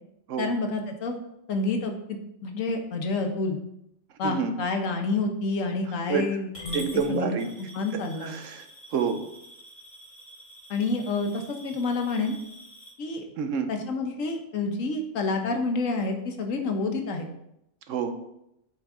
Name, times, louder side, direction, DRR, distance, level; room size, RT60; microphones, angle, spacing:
voice 1, 0.4-1.2 1.5-3.6 4.2-7.3 7.6-8.3 10.7-12.4 13.0-13.3 13.7-17.3, left 3 dB, 80° left, 4 dB, 1.3 m, -28 dB
voice 2, 4.2-4.6 6.1-6.2 6.7-7.5 8.2-8.6 8.9-9.2 13.4-13.7 17.9-18.1, right 6 dB, 75° right, 7 dB, 1.1 m, -28 dB
Coin (dropping) / Glass, 6.5-12.9, equal, 50° left, 2.8 m, -45 dB
8.7 x 4.5 x 3.6 m, 0.80 s
omnidirectional pair, 1.4 m